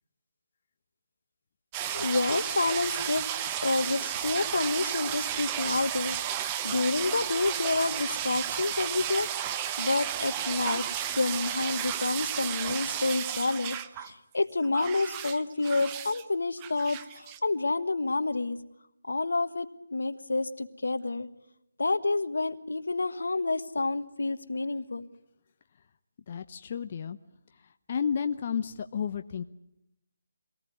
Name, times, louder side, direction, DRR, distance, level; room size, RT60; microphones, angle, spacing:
sound 1, 1.7-14.1 14.4-16.2 16.6-17.4, right 10 dB, 20° right, 0.9 m, -33 dB
voice 1, 1.9-3.3 3.6-18.6 19.1-21.3 21.8-25.0, left 3 dB, 80° left, 12 dB, 1.4 m, -29 dB
voice 2, 26.3-27.2 27.9-29.4, left 7 dB, 40° left, 8 dB, 0.9 m, -31 dB
25.0 x 18.0 x 9.5 m, 0.83 s
figure-of-eight pair, 160°, 0 cm